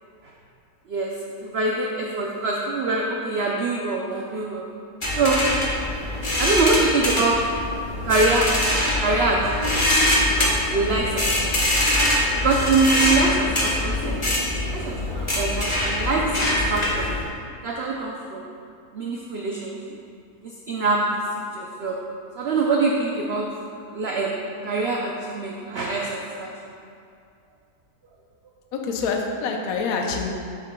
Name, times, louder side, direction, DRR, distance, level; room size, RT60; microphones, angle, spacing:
voice 1, 1.4-4.6 5.1-5.4 6.4-7.4 8.0-8.5 9.0-9.7 10.3-11.8 12.4-14.2 14.7-17.1 17.6-18.4 18.9-19.8 20.4-21.2 21.5-22.0 22.4-23.5 23.9-24.4 24.6-26.5, right 3 dB, 70° right, -1 dB, 0.6 m, -24 dB
sound 1, 5.0-17.3, left 1 dB, 25° left, 0.7 m, -23 dB
voice 2, 28.7-30.3, left 4 dB, 70° left, 2 dB, 1.1 m, -26 dB
7.4 x 7.2 x 2.2 m, 2.4 s
omnidirectional pair, 1.6 m